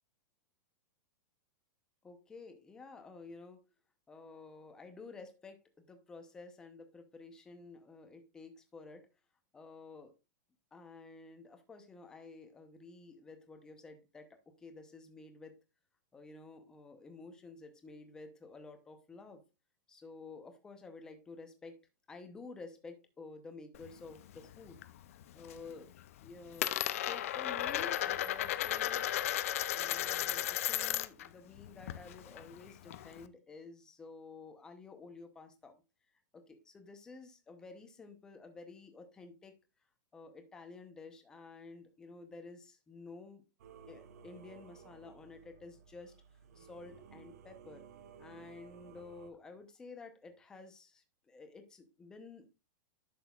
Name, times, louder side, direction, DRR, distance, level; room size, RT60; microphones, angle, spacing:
voice 1, 2.0-3.7 4.1-9.1 9.5-10.1 10.7-15.6 16.1-19.4 19.9-24.8 25.3-25.9 26.2-29.1 29.7-35.8 36.3-39.6 40.1-43.4 43.9-46.2 46.5-47.8 48.2-52.5, left 3 dB, 5° left, 0.7 m, -52 dB
Coin (dropping), 23.7-24.9 25.2-25.7 26.0-31.3 31.6-33.2, left 12 dB, 45° left, 0.5 m, -35 dB
Singing / Musical instrument, 43.6-49.3, right 7 dB, 50° right, 0.9 m, -56 dB
10.5 x 6.2 x 2.3 m
supercardioid pair, 180°, 11 cm